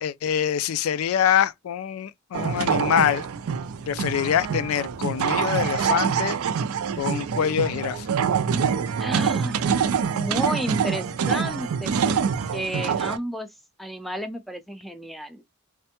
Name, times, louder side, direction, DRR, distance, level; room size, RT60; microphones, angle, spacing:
voice 1, 0.0-3.3 3.9-6.4 7.0-8.1, left 9 dB, 70° left, 0.3 m, -24 dB
sound 1, 2.3-13.2, right 7 dB, 75° right, 0.4 m, -25 dB
voice 2, 9.0-12.2 12.5-13.5 13.8-15.4, equal, ahead, 0.4 m, -32 dB
3.2 x 2.1 x 2.8 m
head